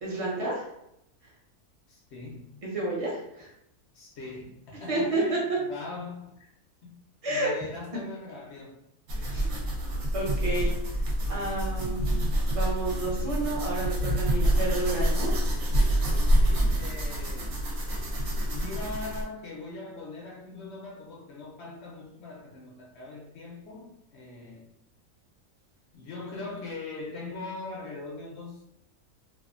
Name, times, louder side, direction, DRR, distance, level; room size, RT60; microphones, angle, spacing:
voice 1, 0.0-0.6 2.6-3.5 4.9-5.2 7.2-7.5 9.1-9.5 10.1-10.7 11.3-15.3, right 2 dB, 35° right, -5 dB, 0.6 m, -31 dB
voice 2, 1.9-2.5 3.9-6.5 6.8-7.0 7.3-8.8 14.3-14.6 16.4-17.6 18.4-24.7 25.9-28.6, left 3 dB, 60° left, -2 dB, 0.7 m, -41 dB
sound 1, 9.1-19.2, right 1 dB, 65° right, 1.0 m, -27 dB
2.6 x 2.3 x 2.4 m, 0.81 s
omnidirectional pair, 1.6 m